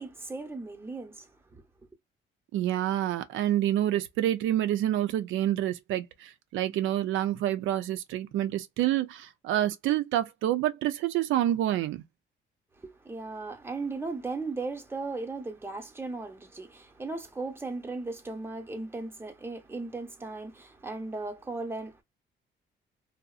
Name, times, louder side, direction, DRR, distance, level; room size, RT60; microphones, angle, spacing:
voice 1, 0.0-1.6 12.8-22.0, right 3 dB, 10° right, 0.7 m, -37 dB
voice 2, 2.5-12.0, right 12 dB, 85° right, 0.4 m, -28 dB
2.7 x 2.0 x 2.4 m
cardioid pair, 90°, 20 cm